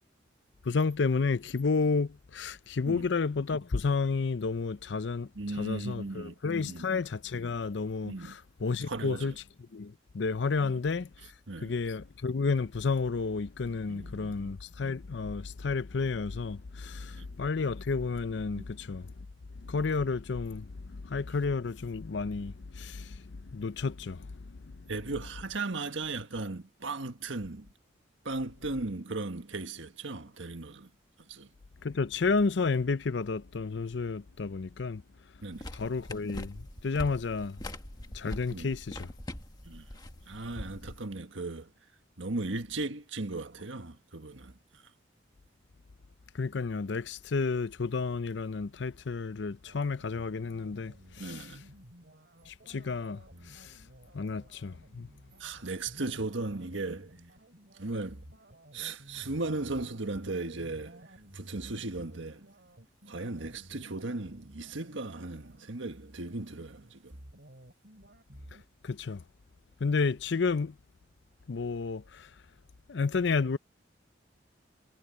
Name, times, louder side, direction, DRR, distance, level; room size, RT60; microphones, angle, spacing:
voice 1, 0.6-5.3 5.6-9.3 9.7-11.3 11.6-19.1 19.6-24.6 31.8-35.0 35.7-37.6 38.1-39.1 46.3-51.5 52.5-53.8 54.1-55.1 68.8-69.2 69.8-70.8 71.5-72.3 72.9-73.6, left 4 dB, 70° left, 0.6 m, -31 dB
voice 2, 5.3-6.9 8.0-8.4 8.9-9.4 10.6-10.7 11.5-11.7 13.9-14.5 17.1-17.2 18.5-18.6 24.9-27.7 28.2-30.9 31.3-31.5 35.4-35.7 38.5-38.7 39.6-39.9 40.3-41.7 42.2-44.8 51.2-51.6 55.4-57.2 57.8-58.2 58.7-61.1 61.3-62.5 63.1-67.2, right 3 dB, 90° right, 1.6 m, -37 dB
sound 1, 35.5-41.1, left 1 dB, 20° left, 1.5 m, -43 dB
sound 2, 49.6-68.6, right 1 dB, 60° right, 3.0 m, -54 dB
head